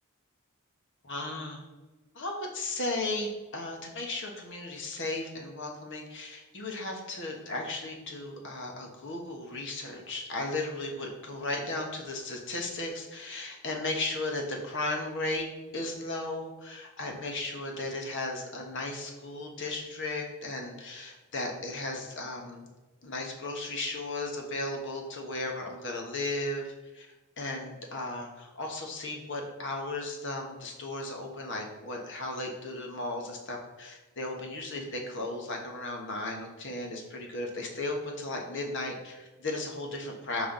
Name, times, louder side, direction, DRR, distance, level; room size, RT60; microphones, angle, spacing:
voice 1, 1.0-1.6 2.1-15.4 15.7-22.7 23.0-27.1 27.4-40.5, left 2 dB, 55° left, 2 dB, 1.2 m, -35 dB
5.7 x 5.4 x 3.8 m, 1.1 s
head